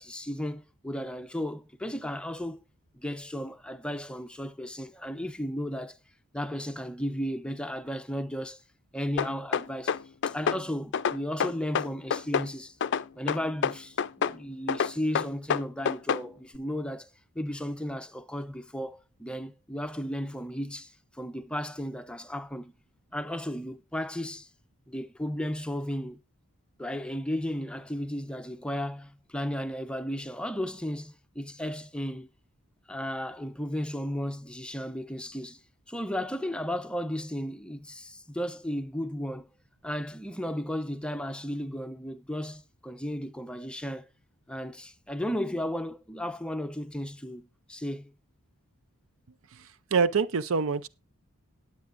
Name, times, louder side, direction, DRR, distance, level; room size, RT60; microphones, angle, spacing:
voice 1, 0.0-2.6 2.9-6.0 6.3-8.6 8.9-9.9 10.2-12.8 13.1-17.1 17.3-20.9 21.2-22.7 23.1-24.5 24.9-26.2 26.8-32.3 32.9-35.6 35.9-39.5 39.8-44.1 44.5-48.1, equal, 5° left, 0.7 m, -34 dB
sound 1, 9.2-10.6 10.9-12.5 12.8-14.4 14.7-16.3, left 7 dB, 55° left, 0.4 m, -27 dB
voice 2, 49.5-50.9, right 5 dB, 65° right, 0.6 m, -26 dB
19.0 x 8.1 x 2.6 m
head